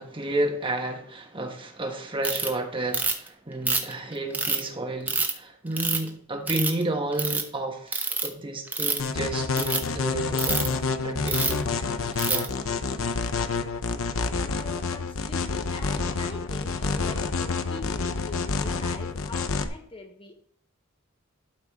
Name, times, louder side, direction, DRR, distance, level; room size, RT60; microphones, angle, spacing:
voice 1, 0.0-11.7 12.3-12.5, right 2 dB, 25° right, 1.3 m, -31 dB
Ratchet pawl, 2.2-2.5 2.9-3.3 3.7-4.6 5.1-5.3 5.8-6.1 6.5-6.8 7.1-7.4 7.9-8.3 8.7-9.1 9.5-9.8 10.4-10.7 11.3-11.6 12.2-12.5, right 3 dB, 10° right, 0.9 m, -26 dB
sound 1, 9.0-19.7, left 4 dB, 85° left, 0.7 m, -28 dB
voice 2, 14.4-20.4, left 3 dB, 25° left, 0.8 m, -42 dB
12.0 x 4.8 x 3.6 m
head